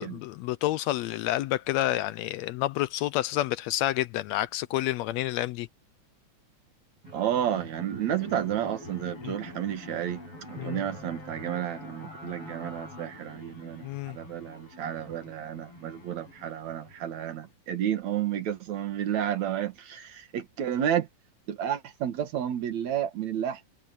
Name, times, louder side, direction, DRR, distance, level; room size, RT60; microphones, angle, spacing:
voice 1, 0.0-5.7 9.2-9.3 10.6-10.8 13.8-14.2, left 15 dB, 80° left, 1.7 m, -29 dB
sound 1, 7.0-17.5, left 1 dB, 45° left, 9.1 m, -45 dB
voice 2, 7.1-10.2 10.5-21.1 21.5-23.6, right 10 dB, 70° right, 2.9 m, -31 dB
omnidirectional pair, 3.3 m